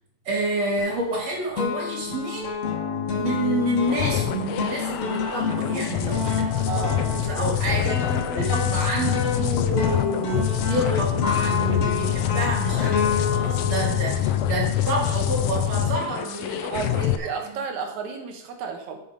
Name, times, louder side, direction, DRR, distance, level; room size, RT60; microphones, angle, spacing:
voice 1, 0.3-2.6 3.2-16.9 17.2-17.3, right 1 dB, 60° right, -2 dB, 3.8 m, -28 dB
sound 1, 0.8-1.2 1.6-15.0, left 5 dB, 60° left, 2.6 m, -29 dB
sound 2, 3.9-17.2, left 11 dB, 80° left, 1.3 m, -25 dB
voice 2, 6.7-7.3 16.7-19.0, right 6 dB, 75° right, 4 dB, 2.6 m, -32 dB
9.4 x 6.9 x 5.4 m, 0.78 s
omnidirectional pair, 3.3 m